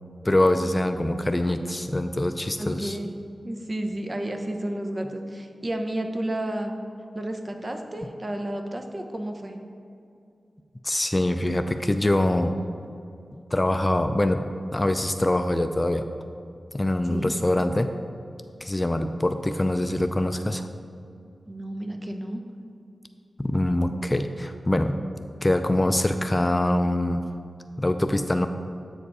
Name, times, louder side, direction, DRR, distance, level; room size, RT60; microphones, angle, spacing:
voice 1, 0.2-3.0 10.8-12.5 13.5-16.0 16.7-17.9 18.6-20.7 23.4-25.0 25.4-27.2 27.8-28.5, left 1 dB, 25° left, 8 dB, 0.4 m, -24 dB
voice 2, 2.6-3.1 3.4-6.7 7.1-9.6 17.1-17.3 21.5-22.4, right 1 dB, 35° right, 5 dB, 0.8 m, -31 dB
8.1 x 4.9 x 4.8 m, 2.5 s
cardioid pair, 60°, 0 cm